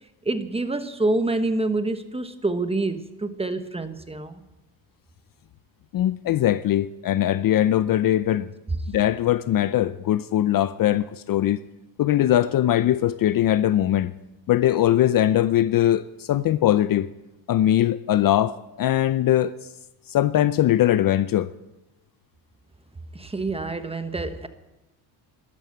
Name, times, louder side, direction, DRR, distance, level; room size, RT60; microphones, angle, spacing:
voice 1, 0.2-4.4 23.1-24.5, right 2 dB, 10° right, 1.2 m, -27 dB
voice 2, 5.9-8.5 8.9-11.6 12.0-14.1 14.5-17.1 17.5-19.5 20.1-21.5, left 12 dB, 45° left, 0.6 m, -21 dB
13.0 x 12.5 x 7.9 m
cardioid pair, 100°, 47 cm